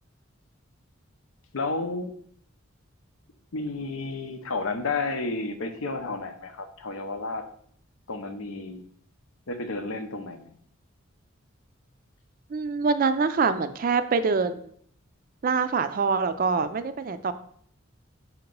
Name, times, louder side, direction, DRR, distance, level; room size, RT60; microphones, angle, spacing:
voice 1, 1.5-2.2 3.5-7.4 8.1-8.8 9.5-10.6, left 3 dB, 85° left, 7 dB, 0.7 m, -31 dB
voice 2, 12.5-14.6 15.4-17.3, right 5 dB, 45° right, 11 dB, 0.3 m, -25 dB
6.3 x 2.9 x 5.2 m, 0.63 s
head